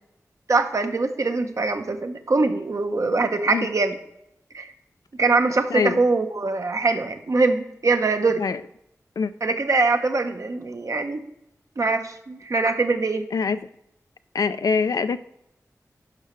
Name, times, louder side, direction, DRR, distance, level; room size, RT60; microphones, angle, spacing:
voice 1, 0.5-4.0 4.5-4.7 5.2-8.4 9.4-11.2 11.8-13.2, right 3 dB, 60° right, 7 dB, 0.8 m, -23 dB
voice 2, 3.0-3.7 5.7-6.0 8.4-8.6 9.2-9.3 13.3-13.6 14.3-15.2, left 5 dB, 85° left, 13 dB, 0.4 m, -24 dB
11.0 x 5.7 x 3.1 m, 0.79 s
wide cardioid pair, 70°, 6 cm